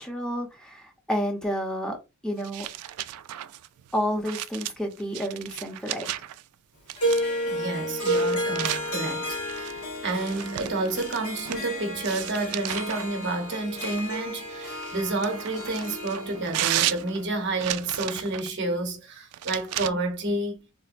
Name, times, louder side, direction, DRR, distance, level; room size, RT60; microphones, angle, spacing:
voice 1, 0.0-2.0 2.2-2.7 3.9-6.1, equal, 5° left, 0.7 m, -30 dB
sound 1, 2.4-6.4 6.9-7.5 8.0-11.7 12.0-13.1 13.8-18.5 19.3-19.9, right 14 dB, 85° right, 0.3 m, -34 dB
Harp, 7.0-18.2, equal, 85° left, 1.2 m, -32 dB
voice 2, 7.5-9.8 10.0-20.7, right 2 dB, 50° right, 0.8 m, -30 dB
4.2 x 2.0 x 2.5 m
head